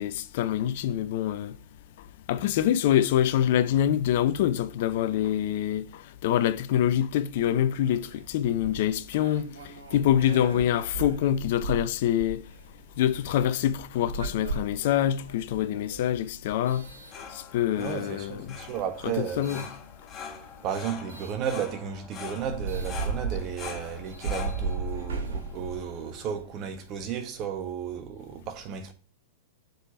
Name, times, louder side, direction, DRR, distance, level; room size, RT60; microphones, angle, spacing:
voice 1, 0.0-1.6 2.3-12.4 13.0-16.8 17.3-18.5 19.0-19.6, left 11 dB, 60° left, 0.7 m, -25 dB
sound 1, 7.8-17.8 18.5-19.7 21.1-21.4 21.9-22.0 22.3-26.4, right 4 dB, 80° right, 1.8 m, -37 dB
sound 2, 16.8-26.5, left 6 dB, 25° left, 1.8 m, -44 dB
voice 2, 17.7-19.7 20.6-28.9, right 8 dB, 40° right, 1.5 m, -34 dB
6.5 x 5.2 x 5.8 m
hypercardioid pair, 105°, 0 cm